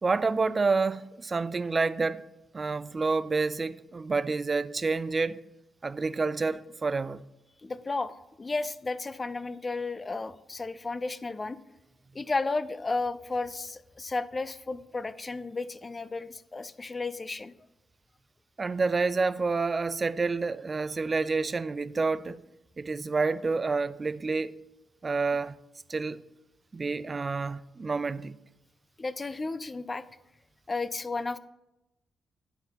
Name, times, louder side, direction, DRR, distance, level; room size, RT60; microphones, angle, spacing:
voice 1, 0.0-2.2 2.5-5.4 5.8-7.2 18.6-22.4 22.8-24.5 25.0-25.6 25.9-26.2 26.7-28.4, right 4 dB, 35° right, 0.3 m, -28 dB
voice 2, 7.6-11.6 12.1-17.5 29.0-30.1 30.7-31.4, left 3 dB, 30° left, 0.4 m, -33 dB
10.0 x 3.5 x 5.8 m
supercardioid pair, 65°, 0 cm